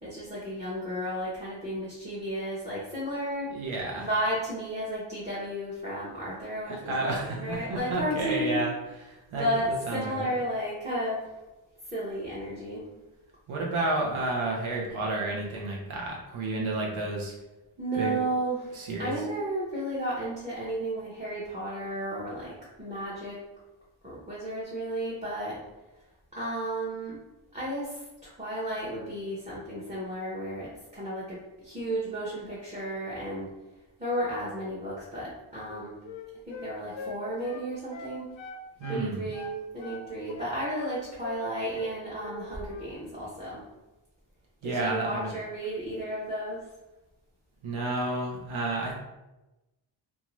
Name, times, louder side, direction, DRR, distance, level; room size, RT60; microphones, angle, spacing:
voice 1, 0.0-3.5 4.0-8.6 9.3-11.4 11.9-12.9 17.8-23.4 24.0-25.6 26.3-27.2 27.5-33.5 34.0-36.0 36.5-38.3 38.9-43.6 44.6-46.7, right 1 dB, 15° right, -8 dB, 0.8 m, -33 dB
voice 2, 3.5-4.1 6.9-8.7 9.0-10.3 13.5-17.3 17.9-18.2 18.7-19.2 38.8-39.2 44.6-45.3 47.6-49.0, right 2 dB, 80° right, -2 dB, 0.7 m, -31 dB
Wind instrument woodwind instrument, 35.6-39.0 39.3-40.9 41.2-41.5 41.7-42.4 42.7-42.9, left 4 dB, 70° left, 0.6 m, -42 dB
2.6 x 2.3 x 3.0 m, 1.0 s
wide cardioid pair, 70°, 48 cm